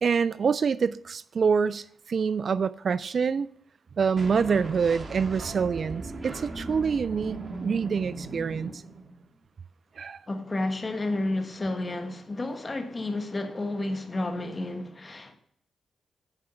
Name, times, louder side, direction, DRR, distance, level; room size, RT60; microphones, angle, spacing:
voice 1, 0.0-3.5 4.0-8.8 10.0-10.2, right 6 dB, 60° right, 0.3 m, -26 dB
sound 1, 4.2-9.3, right 3 dB, 40° right, 1.8 m, -38 dB
voice 2, 10.3-15.4, left 2 dB, 35° left, 1.3 m, -31 dB
10.5 x 4.9 x 5.5 m
supercardioid pair, 50°, 0 cm